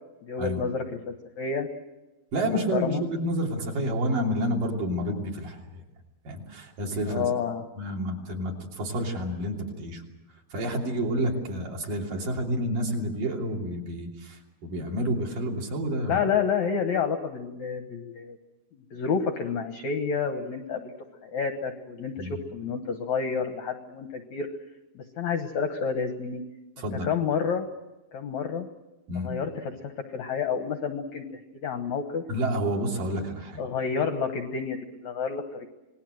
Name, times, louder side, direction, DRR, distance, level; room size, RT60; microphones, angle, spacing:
voice 1, 0.2-1.7 2.4-3.0 7.1-7.6 16.0-18.4 18.7-20.9 21.2-24.5 25.0-26.4 27.0-27.7 28.1-28.7 29.2-31.2 31.5-32.2 33.6-35.7, left 6 dB, 70° left, 6 dB, 1.8 m, -29 dB
voice 2, 2.3-5.8 6.2-7.2 7.8-10.0 10.5-16.2 22.2-22.3 26.8-27.1 29.1-29.3 32.3-33.6, equal, 50° right, 0 dB, 4.4 m, -29 dB
27.5 x 20.0 x 7.8 m, 1.0 s
omnidirectional pair, 5.1 m